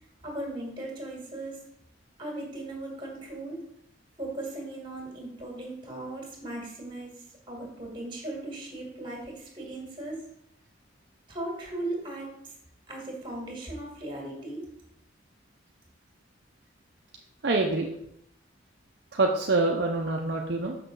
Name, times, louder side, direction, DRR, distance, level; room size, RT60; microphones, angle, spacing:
voice 1, 0.2-1.6 2.2-3.6 4.2-7.1 7.5-10.2 11.3-12.5 12.9-14.7, right 1 dB, 25° right, -1 dB, 2.1 m, -37 dB
voice 2, 17.4-17.9 19.1-20.8, right 3 dB, 60° right, 0 dB, 0.7 m, -25 dB
6.6 x 6.0 x 3.9 m, 0.77 s
head